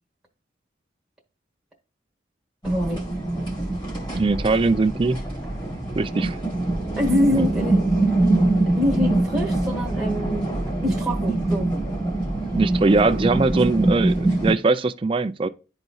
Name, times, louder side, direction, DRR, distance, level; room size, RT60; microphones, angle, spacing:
sound 1, 2.6-14.5, right 2 dB, 25° left, 2.2 m, -24 dB
voice 1, 2.6-3.0 7.0-7.8 8.7-11.7, left 1 dB, 5° right, 1.3 m, -25 dB
voice 2, 4.1-5.2 5.9-6.4 7.3-7.4 12.5-15.5, right 3 dB, 30° right, 0.4 m, -21 dB
11.5 x 4.0 x 2.3 m
head